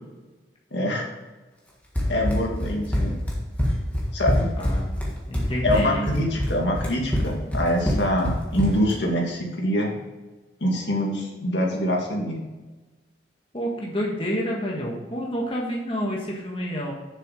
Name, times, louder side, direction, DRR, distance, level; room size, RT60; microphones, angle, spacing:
voice 1, 0.7-1.1 2.1-3.2 4.1-4.5 5.6-10.0 10.6-12.4, equal, 80° left, 0 dB, 2.1 m, -25 dB
Run, 2.0-9.0, equal, 10° left, 1.7 m, -25 dB
voice 2, 4.6-5.0 5.3-6.5 13.5-16.9, equal, 30° left, -2 dB, 1.6 m, -29 dB
7.1 x 6.9 x 5.0 m, 1.2 s
head